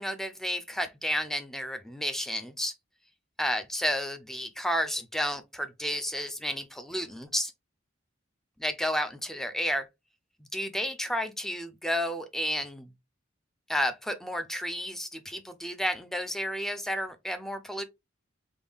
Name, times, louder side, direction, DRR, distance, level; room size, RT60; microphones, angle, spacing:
voice 1, 0.0-2.7 3.4-7.5 8.6-9.9 10.5-12.9 13.7-17.8, equal, ahead, 0.4 m, -31 dB
3.5 x 2.3 x 3.2 m
head